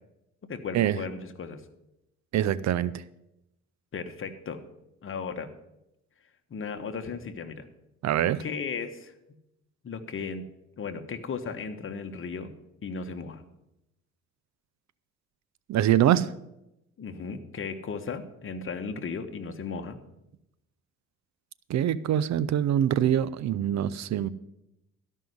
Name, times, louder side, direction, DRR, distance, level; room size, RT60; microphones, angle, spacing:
voice 1, 0.5-1.6 3.9-4.6 5.0-5.5 6.5-7.7 8.4-9.1 9.8-10.4 10.8-12.5 12.8-13.4 17.0-20.0, left 5 dB, 45° left, 6 dB, 1.3 m, -35 dB
voice 2, 2.3-2.9 8.0-8.4 15.7-16.3 21.7-24.3, right 11 dB, 65° right, 17 dB, 0.6 m, -24 dB
13.0 x 5.6 x 7.8 m, 0.86 s
cardioid pair, 90°, 30 cm